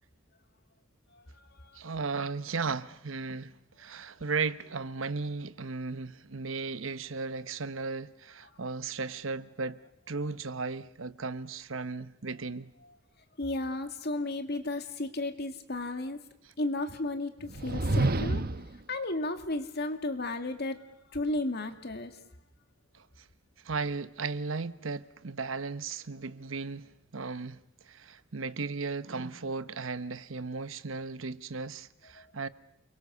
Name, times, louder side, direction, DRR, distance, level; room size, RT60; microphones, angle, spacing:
voice 1, 1.7-9.8 10.1-12.7 22.9-23.0 23.6-27.6 27.9-32.5, right 4 dB, 80° right, 1.0 m, -36 dB
voice 2, 13.4-16.2 16.6-18.4 18.9-20.8 21.1-22.2 32.2-32.3, left 2 dB, 55° left, 2.3 m, -34 dB
sound 1, 17.4-18.8, right 2 dB, 50° right, 1.0 m, -28 dB
29.0 x 23.0 x 6.9 m
head